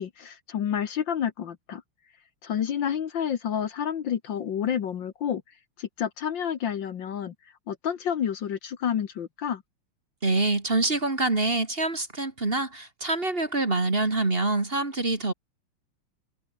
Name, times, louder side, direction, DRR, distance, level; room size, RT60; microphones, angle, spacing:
voice 1, 0.0-1.8 2.4-5.4 5.8-7.3 7.7-9.6, left 8 dB, 60° left, 1.8 m, -29 dB
voice 2, 10.2-15.3, right 2 dB, 25° right, 2.4 m, -25 dB
omnidirectional pair, 2.4 m